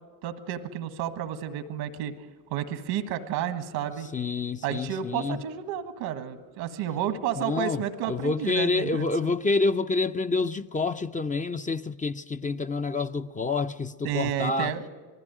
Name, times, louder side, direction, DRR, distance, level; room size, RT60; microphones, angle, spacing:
voice 1, 0.2-2.1 2.5-4.1 4.6-9.3 14.0-14.9, right 10 dB, 85° right, 1.5 m, -31 dB
voice 2, 4.1-5.4 7.4-14.7, left 3 dB, 20° left, 0.5 m, -28 dB
20.0 x 15.0 x 9.2 m
supercardioid pair, 75°, 38 cm